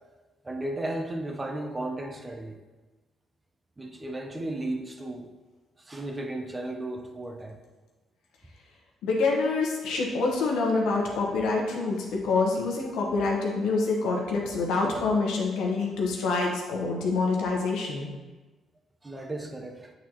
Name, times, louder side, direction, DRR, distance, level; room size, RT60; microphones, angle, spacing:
voice 1, 0.4-2.6 3.8-5.3 5.8-7.6 19.0-19.9, right 1 dB, 20° right, 3 dB, 0.9 m, -34 dB
voice 2, 9.0-18.1, left 3 dB, 90° left, -1 dB, 1.2 m, -26 dB
8.3 x 4.0 x 3.0 m, 1.2 s
cardioid pair, 90°, 0 cm